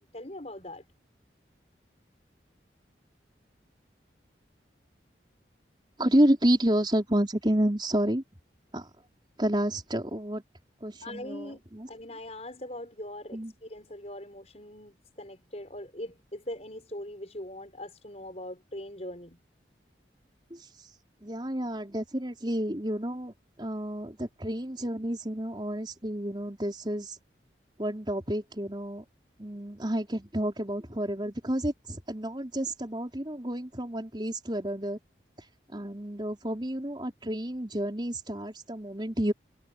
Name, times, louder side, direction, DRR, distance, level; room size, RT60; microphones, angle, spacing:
voice 1, 0.1-0.8 11.0-11.6 11.9-19.4, left 1 dB, 35° left, 5.9 m, -41 dB
voice 2, 6.0-8.2 8.7-8.9 9.4-10.4 10.8-11.9 13.3-13.5 20.5-20.6 21.2-27.2 27.8-29.0 29.4-35.0 35.7-39.3, right 1 dB, 25° right, 4.4 m, -30 dB
head